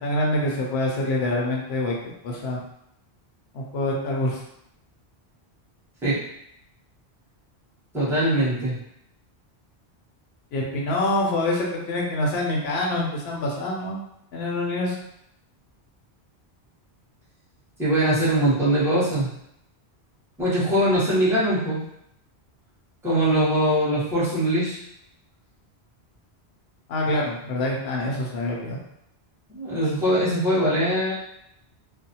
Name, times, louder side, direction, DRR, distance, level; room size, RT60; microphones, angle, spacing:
voice 1, 0.0-2.6 3.5-4.4 10.5-14.0 14.3-15.0 26.9-28.8, left 1 dB, 80° left, -2 dB, 0.8 m, -26 dB
voice 2, 7.9-8.8 17.8-19.3 20.4-21.8 23.0-24.8 29.5-31.1, right 1 dB, 5° right, -11 dB, 0.9 m, -22 dB
2.4 x 2.1 x 2.7 m, 0.78 s
omnidirectional pair, 1.1 m